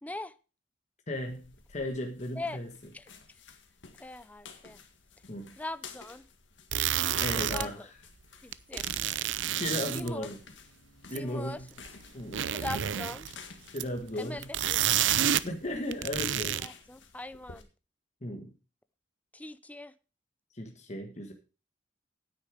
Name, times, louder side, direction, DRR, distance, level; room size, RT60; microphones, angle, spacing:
voice 1, 0.0-0.3 2.4-2.6 2.9-3.1 3.9-4.8 5.6-6.2 7.5-7.9 8.4-8.9 9.9-10.3 11.1-11.6 12.5-13.3 14.2-15.3 16.6-17.7 19.3-19.9, left 2 dB, 10° left, 12 dB, 0.5 m, -41 dB
sound 1, 1.1-17.6, left 5 dB, 85° left, 1.7 m, -52 dB
voice 2, 1.1-2.7 5.3-5.5 7.2-7.8 9.6-10.4 11.1-11.7 12.1-12.5 13.7-14.5 15.4-16.6 18.2-18.5 20.5-21.3, left 1 dB, 40° left, 3 dB, 1.5 m, -35 dB
sound 2, 6.7-7.7 8.5-10.1 11.1-11.2 11.9-12.0 12.2-13.3 13.8-14.0 14.4-15.5 15.8-16.7, right 10 dB, 90° right, 0.6 m, -29 dB
9.6 x 9.3 x 5.0 m, 0.34 s
head